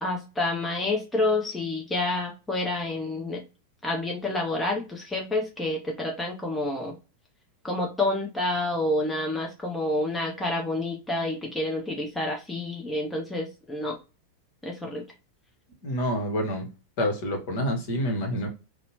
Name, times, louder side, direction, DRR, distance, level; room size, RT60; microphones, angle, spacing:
voice 1, 0.0-3.4 3.8-6.9 7.6-14.0 14.6-15.0, left 2 dB, 10° left, 0.6 m, -28 dB
voice 2, 15.8-16.7 17.0-18.5, equal, 45° left, 1.0 m, -27 dB
2.8 x 2.1 x 2.8 m
figure-of-eight pair, 90°, 0 cm